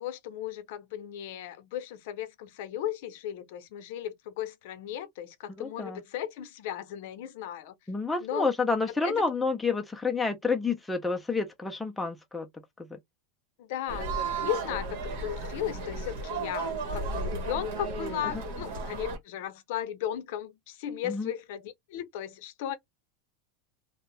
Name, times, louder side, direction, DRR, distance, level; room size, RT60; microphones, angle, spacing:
voice 1, 0.0-7.7 8.2-8.5 8.9-9.2 13.6-14.1 14.4-22.8, left 11 dB, 65° left, 0.6 m, -36 dB
voice 2, 5.6-6.0 7.9-12.5 21.0-21.3, left 4 dB, 5° left, 0.4 m, -29 dB
sound 1, 13.9-19.2, right 3 dB, 65° right, 1.2 m, -34 dB
2.6 x 2.1 x 3.0 m
supercardioid pair, 160°, 0 cm